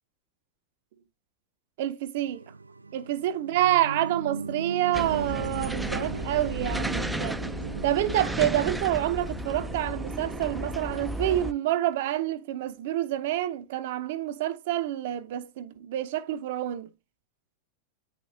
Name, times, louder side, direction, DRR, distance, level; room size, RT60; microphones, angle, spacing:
voice 1, 1.8-2.4 2.9-7.4 7.8-16.9, right 13 dB, 60° right, 0.7 m, -28 dB
sound 1, 2.2-10.9, right 4 dB, 90° right, 0.3 m, -38 dB
sound 2, 4.9-11.5, right 1 dB, 5° right, 0.5 m, -33 dB
9.0 x 5.1 x 2.8 m
figure-of-eight pair, 90°, 0 cm